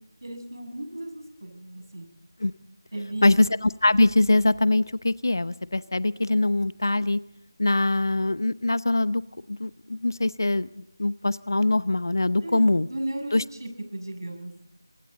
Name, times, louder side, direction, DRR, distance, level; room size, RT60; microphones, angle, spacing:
voice 1, 0.2-2.1 2.9-3.3 12.4-12.6 12.9-13.3 13.6-14.5, right 1 dB, 65° right, 5 dB, 6.8 m, -35 dB
voice 2, 3.2-7.2 7.6-9.2 9.5-10.7 11.0-12.9 13.3-13.4, left 2 dB, 60° left, 16 dB, 0.8 m, -23 dB
29.5 x 24.5 x 3.9 m, 0.70 s
figure-of-eight pair, 165°, 2 cm